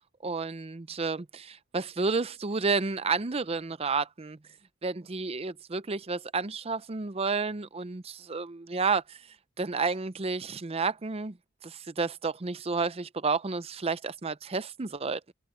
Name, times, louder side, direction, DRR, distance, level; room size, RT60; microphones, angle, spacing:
voice 1, 0.2-4.4 4.8-9.2 9.6-11.4 11.6-15.3, right 4 dB, 30° right, 0.6 m, -31 dB
head